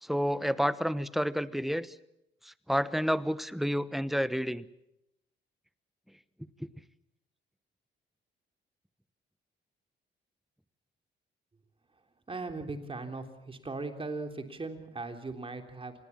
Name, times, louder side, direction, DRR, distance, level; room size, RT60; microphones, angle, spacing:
voice 1, 0.0-2.0 2.4-4.7 6.6-6.7, equal, ahead, 15 dB, 1.0 m, -30 dB
voice 2, 12.3-15.9, right 3 dB, 25° right, 6 dB, 3.4 m, -38 dB
27.5 x 19.5 x 7.4 m, 0.83 s
cardioid pair, 90°, 20 cm